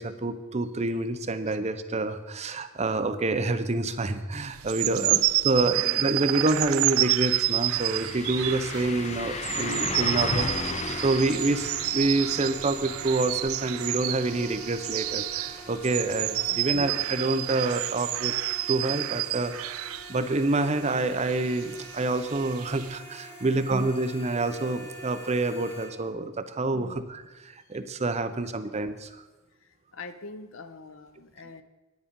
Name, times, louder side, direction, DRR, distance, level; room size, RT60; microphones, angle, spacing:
voice 1, 0.0-18.3 18.7-29.1, right 2 dB, 35° right, 9 dB, 0.7 m, -27 dB
sound 1, 4.5-20.1 20.9-23.0, right 16 dB, 85° right, 0.3 m, -29 dB
sound 2, 6.6-6.7 7.0-16.8 17.1-17.2 20.0-20.1, left 4 dB, 35° left, 0.6 m, -36 dB
sound 3, 8.7-25.8, equal, 15° left, 4.5 m, -46 dB
voice 2, 16.5-16.9 26.7-27.0 29.9-31.6, left 3 dB, 70° left, 11 dB, 0.8 m, -44 dB
10.0 x 9.7 x 5.3 m, 1.2 s
head